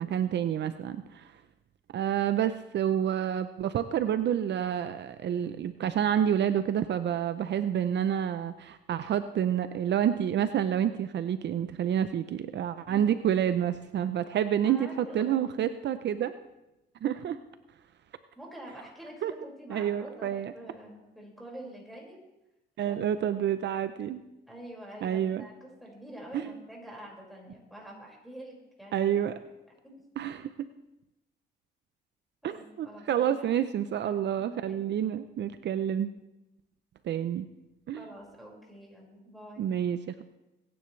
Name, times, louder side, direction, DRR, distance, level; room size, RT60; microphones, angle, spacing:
voice 1, 0.0-1.3 1.9-16.3 17.0-17.4 19.2-19.3 19.7-20.5 22.8-24.2 25.0-25.5 28.9-29.3 30.2-30.7 32.4-36.1 37.0-37.5 37.9-38.0 39.6-40.2, right 9 dB, 60° right, 11 dB, 0.6 m, -28 dB
voice 2, 14.6-15.3 18.4-22.2 22.8-23.0 24.5-29.1 29.8-30.0 32.4-33.5 34.0-34.8 38.0-39.7, equal, ahead, -2 dB, 5.3 m, -46 dB
22.5 x 10.5 x 3.3 m, 0.93 s
cardioid pair, 90°, 20 cm